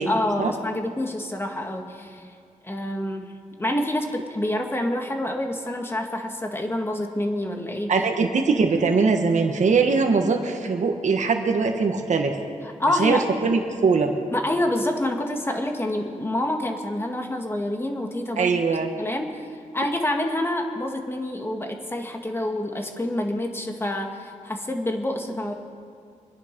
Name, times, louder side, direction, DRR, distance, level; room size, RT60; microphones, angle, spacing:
voice 1, 0.0-2.2 2.6-3.3 3.6-7.9 12.6-13.3 14.3-18.6 19.0-19.5 19.7-25.5, left 1 dB, 20° left, 3 dB, 1.8 m, -27 dB
voice 2, 7.9-12.4 13.0-14.1 18.4-18.9, right 4 dB, 65° right, 3 dB, 1.4 m, -21 dB
25.5 x 10.5 x 5.3 m, 2.3 s
wide cardioid pair, 105°, 13 cm